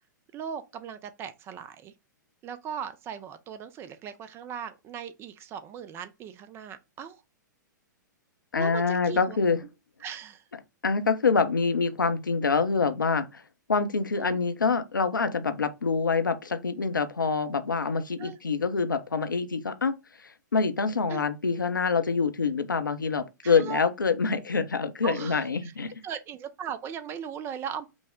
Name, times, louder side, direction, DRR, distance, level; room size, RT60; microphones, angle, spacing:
voice 1, 0.3-1.9 2.4-7.2 8.5-9.4 10.0-10.4 14.2-14.4 18.2-18.4 21.1-21.2 23.4-23.8 25.0-25.7 26.0-27.9, right 7 dB, 25° right, 0.4 m, -38 dB
voice 2, 8.5-9.6 10.8-13.4 13.7-19.9 20.2-26.0, left 4 dB, 80° left, 0.7 m, -26 dB
5.2 x 2.1 x 3.5 m
figure-of-eight pair, 110°, 10 cm